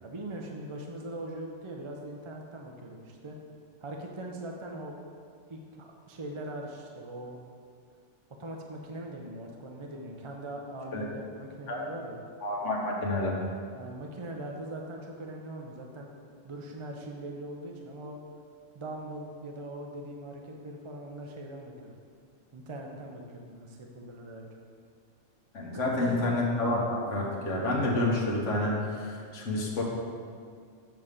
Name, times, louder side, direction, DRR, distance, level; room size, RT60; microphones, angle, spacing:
voice 1, 0.0-3.4 3.8-4.9 5.5-7.4 8.4-12.2 13.8-16.1 16.4-18.2 18.7-22.0 22.5-24.5 25.7-26.2, right 1 dB, 35° right, 1 dB, 0.5 m, -41 dB
voice 2, 12.4-13.3 25.5-29.8, left 2 dB, 90° left, -3 dB, 1.5 m, -29 dB
7.5 x 3.6 x 6.6 m, 2.2 s
omnidirectional pair, 1.2 m